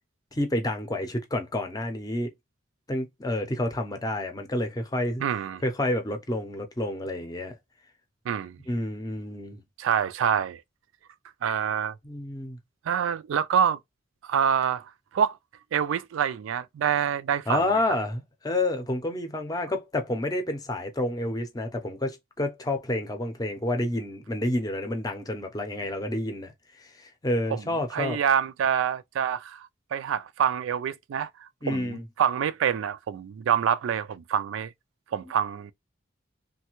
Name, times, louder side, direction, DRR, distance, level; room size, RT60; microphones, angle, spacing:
voice 1, 0.3-2.3 2.9-5.2 5.6-7.6 8.7-9.6 12.0-12.6 17.5-26.5 26.8-28.2 31.6-32.0, left 1 dB, 20° left, 0.5 m, -29 dB
voice 2, 5.2-5.6 8.3-8.6 9.8-10.6 11.4-11.9 12.9-13.8 14.2-15.4 15.7-17.6 27.5-27.6 27.9-34.7 35.1-35.7, right 8 dB, 85° right, 0.3 m, -26 dB
3.2 x 2.1 x 3.0 m
head